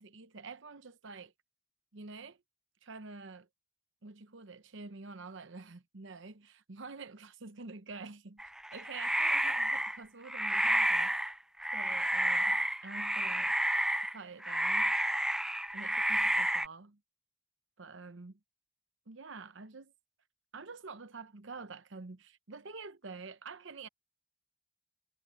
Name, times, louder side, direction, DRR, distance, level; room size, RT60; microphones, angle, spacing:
voice 1, 0.0-1.3 1.9-2.4 2.8-3.5 4.0-8.4 8.7-11.2 11.7-13.6 14.1-15.0 15.7-17.0 17.8-18.4 19.1-19.9 20.5-23.9, right 4 dB, 60° right, 0.9 m, -47 dB
sound 1, 8.4-10.0 10.3-11.3 11.6-14.2 14.4-16.7, right 1 dB, 5° right, 0.4 m, -30 dB
head